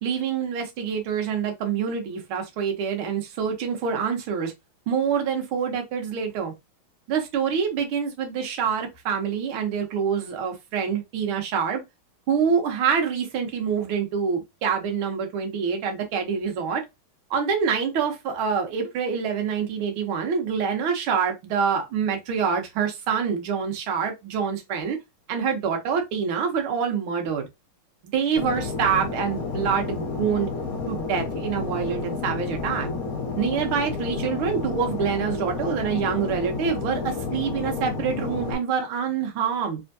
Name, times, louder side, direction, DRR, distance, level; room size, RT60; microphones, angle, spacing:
voice 1, 0.0-4.5 4.9-6.5 7.1-11.8 12.3-16.8 17.3-25.0 25.3-27.5 28.1-30.5 30.9-32.9 33.4-39.8, right 6 dB, 75° right, 1.9 m, -26 dB
Fixed-wing aircraft airplane, 28.4-38.5, left 4 dB, 55° left, 1.1 m, -31 dB
3.6 x 3.4 x 2.6 m
omnidirectional pair, 2.4 m